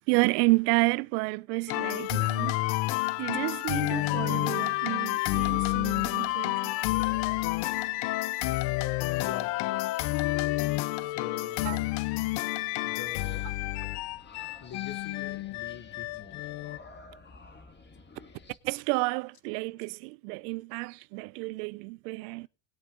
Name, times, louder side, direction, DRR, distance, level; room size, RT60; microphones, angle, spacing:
voice 1, 0.1-2.6 3.2-6.8 11.6-11.8 18.6-22.5, right 24 dB, 80° right, 0.5 m, -30 dB
sound 1, 1.7-16.8, left 19 dB, 60° left, 0.6 m, -29 dB
voice 2, 9.1-9.9 11.0-11.9 12.8-13.5 14.6-16.4, left 7 dB, 40° left, 1.4 m, -44 dB
sound 2, 12.9-18.6, left 3 dB, 25° left, 1.8 m, -52 dB
20.5 x 7.6 x 3.7 m
supercardioid pair, 115°, 46 cm